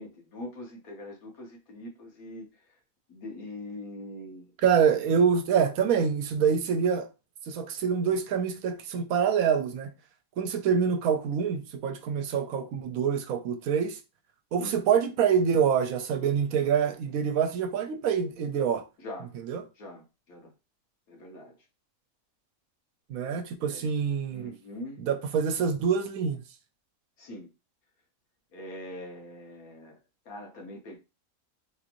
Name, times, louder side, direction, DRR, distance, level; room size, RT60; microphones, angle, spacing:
voice 1, 0.0-2.5 3.1-4.5 14.6-14.8 19.0-19.3 19.7-20.5 21.1-21.5 23.7-23.9 24.3-25.0 27.2-27.5 28.5-30.0 30.2-31.0, left 1 dB, 85° left, 1.6 m, -42 dB
voice 2, 4.6-7.1 7.5-9.9 10.4-14.0 14.5-18.8 19.5-19.6 23.1-24.5 25.0-26.4, right 7 dB, 80° right, 1.0 m, -26 dB
3.6 x 2.9 x 2.5 m
omnidirectional pair, 1.5 m